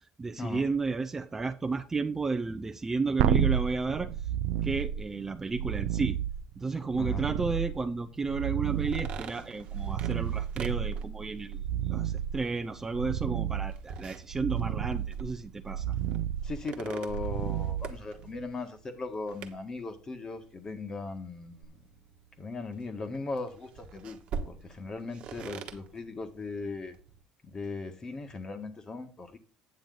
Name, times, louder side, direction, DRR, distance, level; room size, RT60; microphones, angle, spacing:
voice 1, 0.2-4.1 4.6-6.2 6.6-16.0, right 4 dB, 20° right, 0.6 m, -32 dB
sound 1, 3.2-18.5 21.6-21.7, right 10 dB, 75° right, 0.5 m, -32 dB
sound 2, 8.7-27.2, right 6 dB, 55° right, 1.3 m, -46 dB
voice 2, 16.4-21.8 22.4-24.2 24.4-27.0 27.4-29.4, left 3 dB, 30° left, 1.6 m, -38 dB
9.1 x 7.0 x 3.9 m
supercardioid pair, 95°, 2 cm